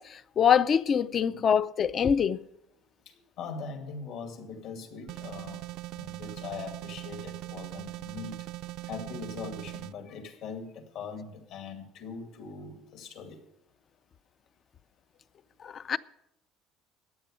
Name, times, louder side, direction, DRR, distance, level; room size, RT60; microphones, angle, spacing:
voice 1, 0.0-2.4 15.6-16.0, left 7 dB, 30° left, 0.4 m, -24 dB
voice 2, 3.1-5.6 6.0-8.3 8.9-13.4, left 5 dB, 65° left, 2.3 m, -41 dB
sound 1, 5.1-9.9, right 17 dB, 60° right, 0.4 m, -40 dB
14.0 x 10.0 x 5.0 m
cardioid pair, 160°, 0 cm